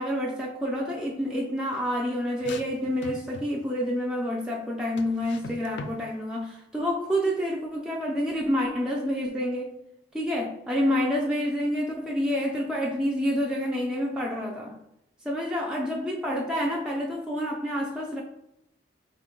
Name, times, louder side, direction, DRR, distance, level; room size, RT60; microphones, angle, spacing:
voice 1, 0.0-9.8 10.1-14.8 15.3-18.2, equal, 5° right, 0.3 m, -28 dB
sound 1, 2.4-3.7 5.0-6.0, left 3 dB, 65° left, 0.4 m, -40 dB
5.1 x 2.2 x 3.7 m
head